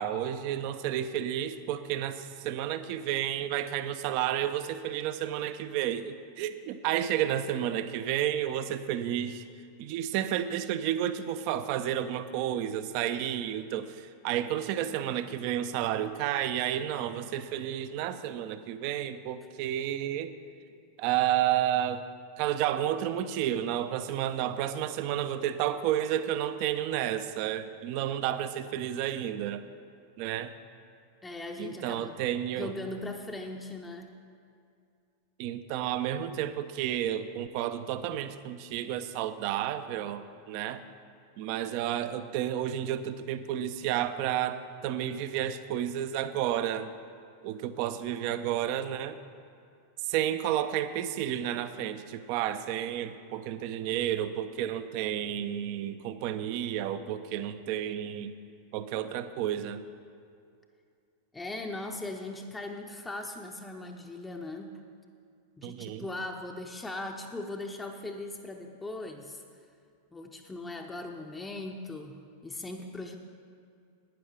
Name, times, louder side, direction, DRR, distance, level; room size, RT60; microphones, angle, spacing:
voice 1, 0.0-9.4 9.8-20.4 21.0-22.1 22.4-29.7 30.2-30.5 31.6-32.7 35.4-40.8 41.4-46.9 47.4-49.2 50.1-58.4 58.7-59.8 65.6-66.1, right 11 dB, 45° right, 12 dB, 0.5 m, -31 dB
voice 2, 31.2-32.2 32.5-34.1 61.3-64.7 65.6-69.4 70.1-73.2, left 2 dB, 10° left, 2 dB, 0.7 m, -39 dB
12.0 x 9.4 x 4.9 m, 2.4 s
figure-of-eight pair, 90°, 0 cm